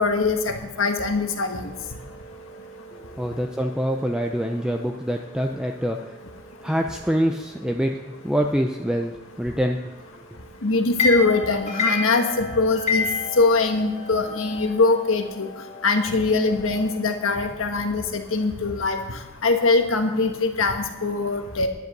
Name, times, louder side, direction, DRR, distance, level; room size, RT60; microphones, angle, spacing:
voice 1, 0.0-1.7 10.6-13.1 13.4-15.5 15.8-21.7, left 3 dB, 85° left, 5 dB, 1.3 m, -22 dB
sound 1, 1.6-17.0, left 4 dB, 35° left, 1.4 m, -33 dB
voice 2, 3.1-6.2 6.6-9.8, equal, 5° right, 3 dB, 0.4 m, -25 dB
10.5 x 7.8 x 6.7 m, 1.1 s
head